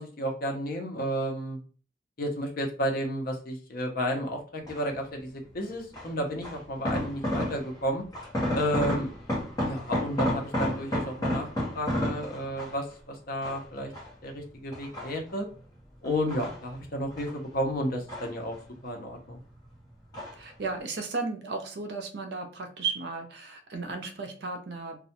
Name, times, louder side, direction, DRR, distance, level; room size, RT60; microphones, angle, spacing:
voice 1, 0.0-1.6 2.2-8.0 8.5-9.1 9.6-11.5 11.7-13.9 14.2-15.5 16.0-18.6 18.8-19.4, equal, 50° left, 2 dB, 0.6 m, -32 dB
sound 1, 4.7-5.1 5.9-7.8 8.1-12.9 13.4-14.3 14.7-15.5 16.0-17.4 17.7-18.8 19.1-19.7 20.1-20.5 20.8-20.9, equal, 20° left, 0.8 m, -32 dB
voice 2, 20.3-25.0, right 4 dB, 60° right, 5 dB, 0.5 m, -34 dB
2.3 x 2.1 x 2.8 m, 0.39 s
head